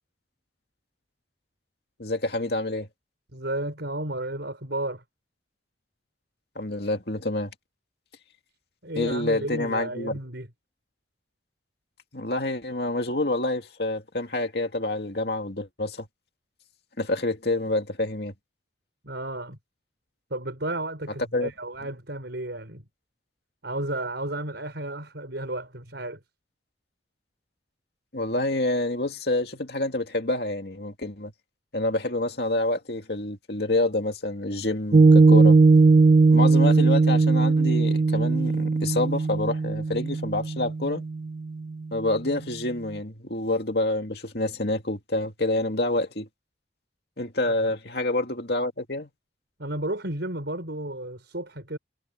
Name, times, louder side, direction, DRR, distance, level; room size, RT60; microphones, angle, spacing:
voice 1, 2.0-2.9 6.6-7.5 9.0-10.1 12.1-16.1 17.0-18.3 21.3-21.5 28.1-31.3 31.7-35.6 36.3-41.0 41.9-46.3 47.2-49.1, left 2 dB, 60° left, 2.4 m, -27 dB
voice 2, 3.3-5.0 8.8-10.5 19.0-19.6 20.3-22.8 23.6-26.2 47.4-47.5 49.6-51.8, right 1 dB, 70° right, 4.8 m, -33 dB
Piano, 34.9-41.6, right 3 dB, 45° right, 0.3 m, -19 dB
head